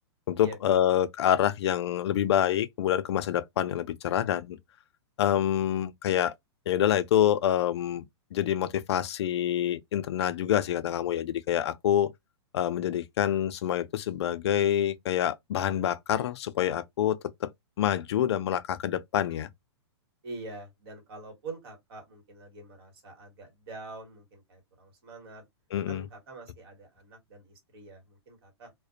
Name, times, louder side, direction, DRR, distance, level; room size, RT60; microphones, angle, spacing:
voice 1, 0.3-4.6 5.2-6.3 6.7-8.0 8.3-12.1 12.5-17.5 17.8-19.5 25.7-26.0, left 10 dB, 70° left, 0.4 m, -27 dB
voice 2, 20.2-25.4 25.9-28.7, right 3 dB, 60° right, 1.4 m, -45 dB
2.4 x 2.1 x 2.4 m
hypercardioid pair, 150°, 14 cm